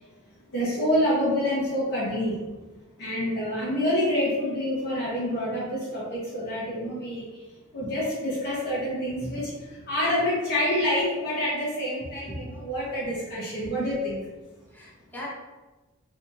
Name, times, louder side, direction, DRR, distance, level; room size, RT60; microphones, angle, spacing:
voice 1, 0.5-2.3 3.0-7.2 7.7-9.5 9.9-14.2, left 1 dB, 50° left, -8 dB, 0.9 m, -27 dB
voice 2, 12.0-12.5 14.7-15.3, equal, 10° left, -6 dB, 0.8 m, -38 dB
3.4 x 2.8 x 2.6 m, 1.2 s
head